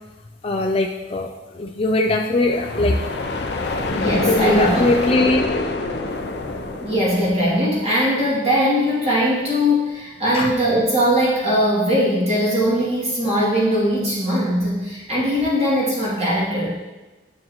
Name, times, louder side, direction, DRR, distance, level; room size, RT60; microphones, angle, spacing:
voice 1, 0.4-3.0 3.6-3.8 4.3-5.5 10.3-10.5, left 2 dB, 30° left, 1 dB, 0.4 m, -21 dB
sound 1, 2.5-8.2, left 2 dB, 65° left, 0.7 m, -26 dB
voice 2, 3.9-4.8 6.8-16.8, equal, 35° right, -8 dB, 2.7 m, -20 dB
9.6 x 7.4 x 3.1 m, 1.1 s
head